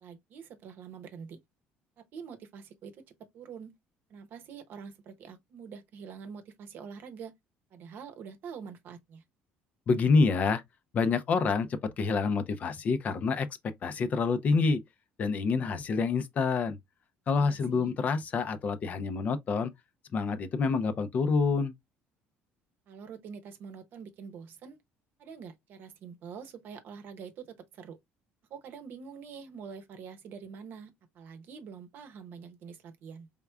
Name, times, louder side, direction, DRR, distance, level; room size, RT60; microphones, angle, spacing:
voice 1, 0.0-1.4 2.0-3.7 4.1-7.3 7.7-9.2 17.4-17.9 22.9-24.8 25.2-28.0 28.5-33.3, right 6 dB, 55° right, 0.8 m, -45 dB
voice 2, 9.9-10.6 10.9-13.5 13.8-14.8 15.2-16.8 17.3-19.7 20.1-21.7, left 4 dB, 40° left, 0.5 m, -27 dB
4.5 x 3.5 x 2.3 m
cardioid pair, 145°, 4 cm